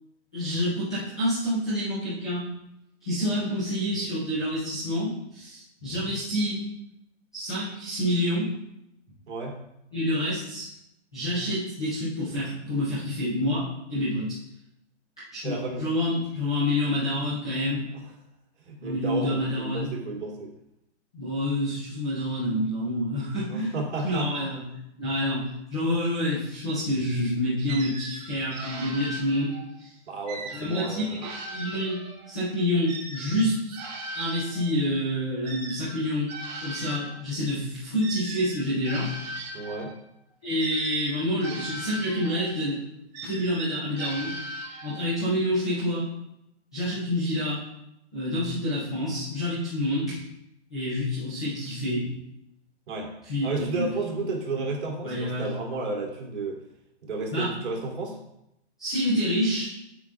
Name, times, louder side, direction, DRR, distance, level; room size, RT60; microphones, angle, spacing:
voice 1, 0.3-2.4 3.0-6.6 7.3-8.5 9.9-10.7 11.1-13.6 13.9-14.4 15.3-17.8 18.8-19.9 21.1-24.6 25.0-25.4 25.7-29.5 29.8-29.9 30.5-31.2 31.5-32.0 32.3-33.8 34.1-36.3 36.6-39.1 40.4-42.8 43.2-44.3 44.8-46.0 46.7-47.6 48.1-50.2 50.7-52.0 53.3-53.8 54.5-54.6 55.0-55.5 57.3-57.5 58.8-59.7, left 1 dB, 5° left, -15 dB, 0.3 m, -27 dB
voice 2, 9.3-9.6 15.4-15.9 17.9-18.0 18.6-20.5 23.5-24.3 30.1-31.2 39.5-40.0 52.9-53.1 53.4-56.6 57.0-58.2, right 3 dB, 75° right, -1 dB, 2.6 m, -32 dB
sound 1, 27.7-29.7 30.3-32.3 32.9-37.2 38.0-40.0 40.6-42.6 43.1-45.1, right 2 dB, 35° right, 1.6 m, -39 dB
9.6 x 7.3 x 2.3 m, 0.84 s
hypercardioid pair, 155°, 35 cm